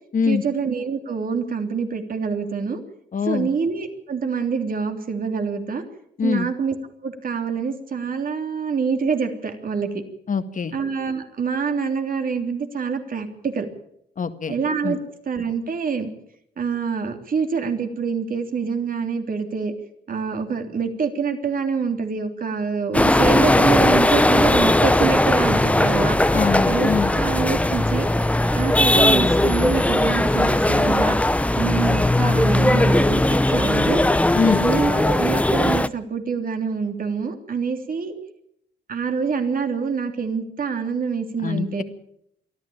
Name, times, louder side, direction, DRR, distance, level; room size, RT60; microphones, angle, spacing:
voice 1, 0.3-2.8 3.2-5.8 6.2-6.8 7.0-10.0 10.7-13.7 14.5-15.0 15.3-16.1 16.6-19.7 20.1-26.2 26.7-26.9 27.2-28.1 28.5-31.2 31.6-34.0 34.6-38.1 38.9-41.8, right 5 dB, 45° right, 6 dB, 3.3 m, -26 dB
voice 2, 3.1-3.5 6.2-6.5 10.3-10.7 14.2-14.6 14.8-15.0 26.3-27.1 34.3-34.7 41.4-41.8, left 5 dB, 40° left, 9 dB, 1.8 m, -23 dB
sound 1, 22.9-35.9, left 1 dB, 5° left, 0.8 m, -18 dB
23.5 x 14.0 x 8.7 m, 0.74 s
cardioid pair, 90°, 20 cm